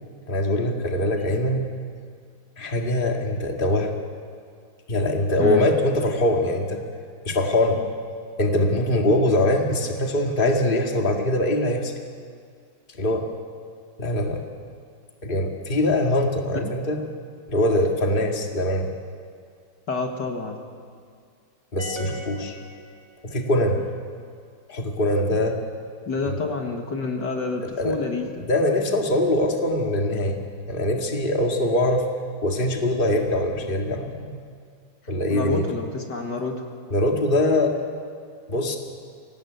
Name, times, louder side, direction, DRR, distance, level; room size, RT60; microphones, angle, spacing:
voice 1, 0.3-1.7 2.6-3.9 4.9-6.8 7.3-7.8 8.4-11.9 13.0-13.3 14.0-14.4 15.2-17.0 17.5-18.9 21.7-22.6 23.2-23.8 24.7-25.6 26.2-26.4 27.8-28.0 28.4-30.4 30.7-32.1 32.4-34.4 35.1-35.6 36.9-37.7 38.5-38.8, left 1 dB, 25° left, 2 dB, 2.2 m, -22 dB
voice 2, 19.9-20.6 26.1-28.4 35.3-36.6, left 3 dB, 55° left, 3 dB, 2.4 m, -28 dB
sound 1, 21.8-23.5, right 1 dB, 15° right, 3.1 m, -38 dB
24.5 x 18.0 x 9.3 m, 2.1 s
omnidirectional pair, 2.2 m